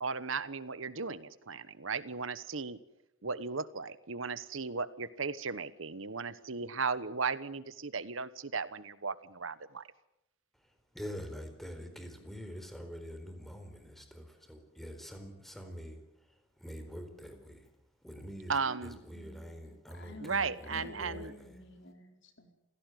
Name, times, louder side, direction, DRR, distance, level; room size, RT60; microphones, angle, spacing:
voice 1, 0.0-2.8 3.2-9.9 18.5-19.0 20.2-21.3, right 5 dB, 70° right, 15 dB, 1.2 m, -36 dB
voice 2, 10.5-21.6, equal, ahead, 6 dB, 4.2 m, -46 dB
voice 3, 19.1-22.5, left 1 dB, 65° left, 5 dB, 4.6 m, -51 dB
27.5 x 17.0 x 9.3 m, 0.87 s
head